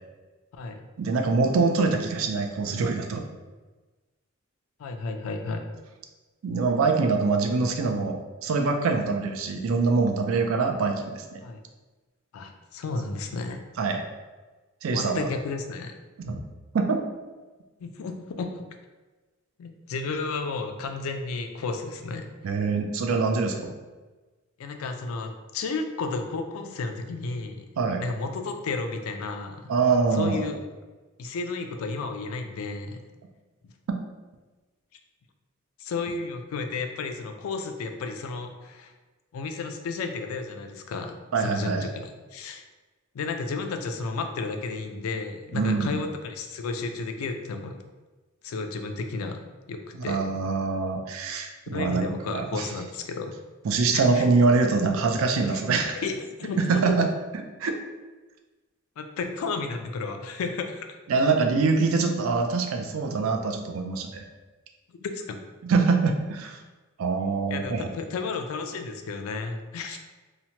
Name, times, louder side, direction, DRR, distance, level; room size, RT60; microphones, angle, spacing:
voice 1, 1.0-3.2 6.4-11.2 13.8-14.0 14.8-15.3 16.2-16.4 16.7-17.0 22.4-23.7 27.8-28.0 29.7-30.4 33.9-34.0 41.3-41.9 45.5-46.0 49.9-52.7 53.6-56.0 56.6-57.1 57.6-57.8 61.1-64.2 65.6-66.6 67.0-67.9 69.9-70.0, right 4 dB, 75° right, 4 dB, 0.4 m, -24 dB
voice 2, 4.8-5.7 11.4-11.6 12.3-13.6 14.9-16.0 17.8-18.6 19.6-22.3 24.6-27.7 28.0-29.7 30.1-30.6 31.2-33.0 33.6-33.7 35.8-38.9 39.3-42.6 43.1-47.8 48.4-49.4 49.7-50.2 51.7-53.4 53.9-54.3 55.5-55.6 56.0-57.0 59.0-61.0 65.0-65.4 67.5-70.0, left 4 dB, 90° left, 6 dB, 0.3 m, -32 dB
2.8 x 2.1 x 2.8 m, 1.2 s
head